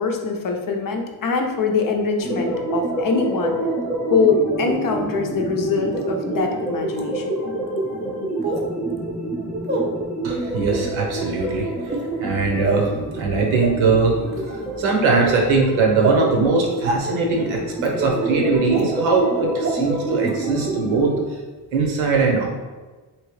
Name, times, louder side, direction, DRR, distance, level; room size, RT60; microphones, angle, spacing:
voice 1, 0.0-3.6 4.1-7.5, left 4 dB, 45° left, 3 dB, 0.6 m, -23 dB
sound 1, 2.2-21.2, right 2 dB, 5° left, 0.8 m, -27 dB
sound 2, 5.9-6.0 6.9-7.0 8.4-8.7 9.6-9.8 10.6-10.8 11.8-12.1 12.7-12.9 13.6-13.7 14.3-14.5 15.2-15.3 16.0-16.2 16.9-17.0 17.8-17.9 18.7-18.8 19.6-19.7 20.2-20.3, right 2 dB, 25° right, 0.5 m, -25 dB
voice 2, 10.2-11.9 12.2-14.2 14.8-21.1 21.7-22.5, right 4 dB, 85° right, 0 dB, 0.9 m, -20 dB
3.0 x 2.8 x 3.1 m, 1.3 s
cardioid pair, 90°, 46 cm